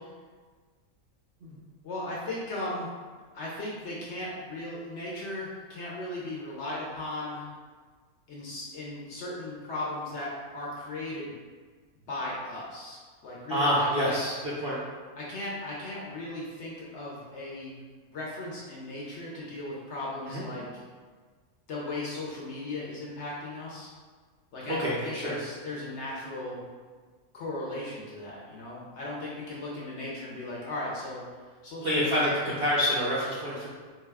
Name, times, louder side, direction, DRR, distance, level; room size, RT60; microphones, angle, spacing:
voice 1, 1.8-2.9 3.3-7.5 8.3-11.3 12.1-14.2 15.2-17.8 18.1-20.6 21.7-23.9 24.5-26.6 27.3-31.2 31.6-32.2, left 2 dB, 60° left, -5 dB, 0.8 m, -37 dB
voice 2, 13.5-14.8 20.3-20.5 24.7-25.3 31.8-33.7, equal, 55° right, -7 dB, 0.6 m, -27 dB
3.8 x 2.2 x 3.4 m, 1.5 s
omnidirectional pair, 1.6 m